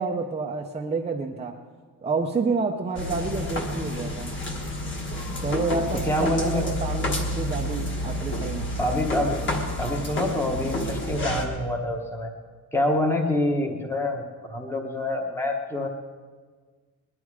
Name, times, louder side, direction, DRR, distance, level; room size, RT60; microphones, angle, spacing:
voice 1, 0.0-1.6 2.0-4.3 5.4-8.7, right 4 dB, 15° right, 1 dB, 0.6 m, -29 dB
sound 1, 3.0-11.5, left 1 dB, 35° left, 1.6 m, -29 dB
voice 2, 6.0-6.7 8.8-9.4 9.8-12.3 12.7-14.2 14.5-15.9, left 1 dB, 5° left, 3 dB, 1.0 m, -26 dB
20.5 x 11.5 x 4.8 m, 1.5 s
cardioid pair, 175°, 36 cm